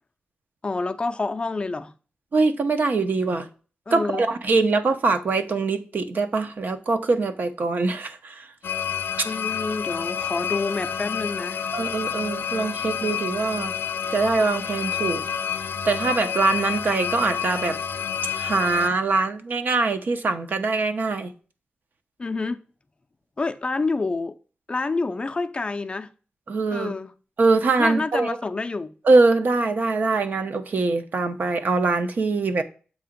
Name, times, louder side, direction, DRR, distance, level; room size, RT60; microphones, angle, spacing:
voice 1, 0.6-1.9 3.9-4.3 9.2-11.6 22.2-22.6 23.4-24.4 24.7-26.1 26.7-27.1 27.8-28.9, left 3 dB, 30° left, 0.4 m, -28 dB
voice 2, 2.3-3.5 3.9-8.5 11.7-13.7 14.1-15.2 15.8-17.8 18.3-21.3 26.5-26.9 27.4-28.4 29.0-32.6, right 3 dB, 60° right, 0.7 m, -23 dB
sound 1, 8.6-18.9, left 8 dB, 90° left, 0.4 m, -29 dB
7.5 x 2.9 x 5.0 m
wide cardioid pair, 155°, 4 cm